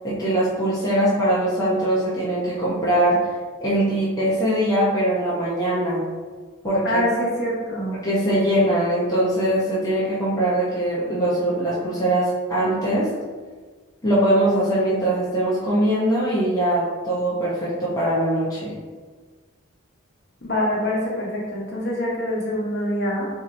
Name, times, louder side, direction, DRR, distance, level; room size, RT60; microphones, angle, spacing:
voice 1, 0.0-3.2 3.6-6.0 6.6-7.0 8.0-13.1 14.0-18.7, right 1 dB, 15° left, -8 dB, 0.8 m, -21 dB
voice 2, 6.8-8.0 20.4-23.3, left 1 dB, 50° left, -4 dB, 1.1 m, -25 dB
6.3 x 2.7 x 2.6 m, 1.4 s
head